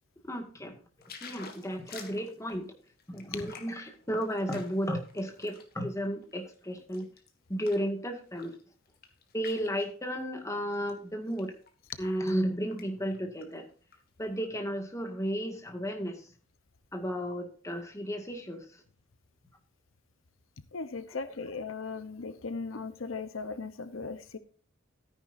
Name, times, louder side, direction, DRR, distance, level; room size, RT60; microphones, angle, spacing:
voice 1, 0.3-0.7 1.2-2.7 3.1-7.1 7.5-8.5 9.3-11.5 12.0-13.7 14.2-16.2 16.9-18.7, equal, 15° left, 4 dB, 1.9 m, -33 dB
sound 1, 1.0-5.7 6.2-7.9 8.3-8.6 8.9-9.9 10.7-10.9 11.3-12.4 12.7-12.9 13.1-14.0 14.4-14.5, left 6 dB, 50° left, 1.9 m, -50 dB
voice 2, 20.7-24.4, left 4 dB, 85° left, 12 dB, 0.9 m, -38 dB
13.5 x 9.8 x 2.6 m, 0.40 s
head